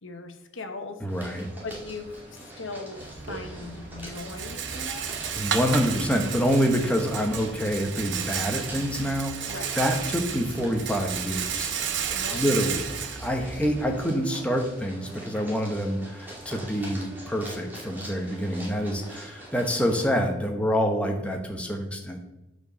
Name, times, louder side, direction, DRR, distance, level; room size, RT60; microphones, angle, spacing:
voice 1, 0.0-1.0 1.6-5.3 9.5-9.7 12.1-12.6, left 3 dB, 70° left, 6 dB, 1.1 m, -39 dB
voice 2, 1.0-1.5 5.4-9.3 9.8-11.7 12.3-22.2, equal, 5° left, 2 dB, 1.0 m, -26 dB
sound 1, 1.1-20.1, right 1 dB, 10° right, 2.1 m, -44 dB
Rattle, 3.0-14.0, right 7 dB, 60° right, 0.8 m, -33 dB
8.1 x 4.9 x 6.3 m, 0.99 s
head